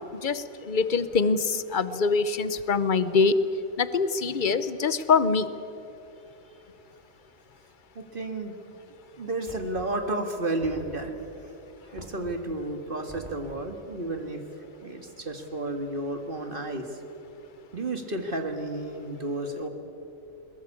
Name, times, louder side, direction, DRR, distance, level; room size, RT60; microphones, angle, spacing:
voice 1, 0.1-3.4 3.8-5.5, left 4 dB, 40° left, 14 dB, 0.9 m, -24 dB
voice 2, 8.0-8.5 9.2-11.1 11.9-14.4 14.8-16.9 17.7-19.7, right 2 dB, 40° right, 6 dB, 2.0 m, -32 dB
Knock, 9.5-10.2 10.6-11.4 11.9-12.6 13.1-13.8, right 1 dB, 20° right, 2.6 m, -46 dB
22.0 x 21.0 x 8.6 m, 2.9 s
omnidirectional pair, 1.4 m